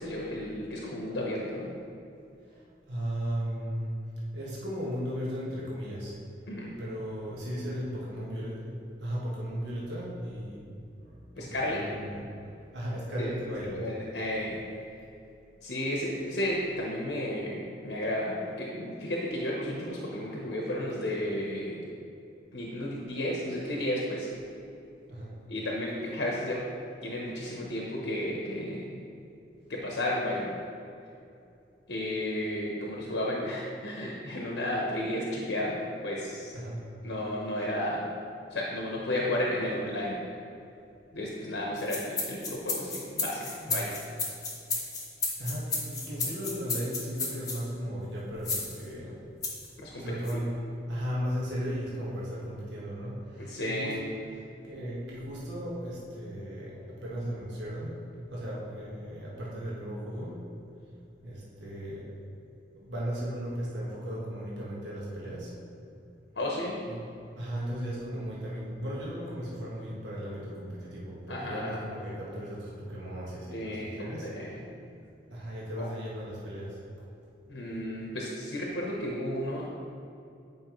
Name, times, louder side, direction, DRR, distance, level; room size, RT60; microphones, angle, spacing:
voice 1, 0.0-1.7 6.5-6.7 11.3-11.8 13.2-13.3 13.7-14.6 15.6-17.6 17.8-21.8 22.5-24.3 25.5-26.6 27.0-29.0 29.7-30.5 31.9-35.8 36.0-36.5 37.0-38.1 38.5-40.2 41.1-43.9 49.8-50.4 53.4-54.1 66.3-66.8 71.3-71.8 73.5-74.6 75.8-75.9 77.5-79.7, left 1 dB, 75° left, -3 dB, 0.8 m, -33 dB
voice 2, 2.5-3.9 4.3-6.1 6.8-8.7 9.0-10.6 11.0-12.3 12.7-13.9 25.1-25.3 36.5-36.8 43.6-43.8 44.8-44.9 45.4-49.2 50.0-50.5 50.9-54.0 54.6-58.0 58.3-60.4 61.2-62.1 62.7-65.5 66.9-67.0 67.4-74.5 75.3-76.8, equal, 75° right, -6 dB, 1.3 m, -36 dB
sound 1, 41.8-47.6 48.4-48.8 49.4-49.7 50.2-50.3, left 3 dB, 20° left, 1.0 m, -32 dB
9.2 x 5.3 x 3.0 m, 2.7 s
head